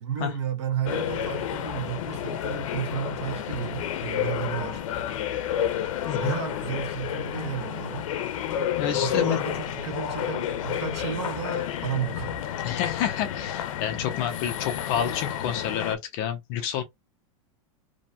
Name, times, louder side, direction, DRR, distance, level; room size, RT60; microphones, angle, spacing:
voice 1, 0.0-4.8 6.2-8.1 8.9-12.3, right 9 dB, 60° right, 0.8 m, -33 dB
sound 1, 0.9-16.0, left 10 dB, 90° left, 0.5 m, -30 dB
voice 2, 6.1-6.4 8.8-9.4 12.6-16.8, left 9 dB, 30° left, 0.4 m, -29 dB
2.6 x 2.1 x 2.7 m
supercardioid pair, 180°, 17 cm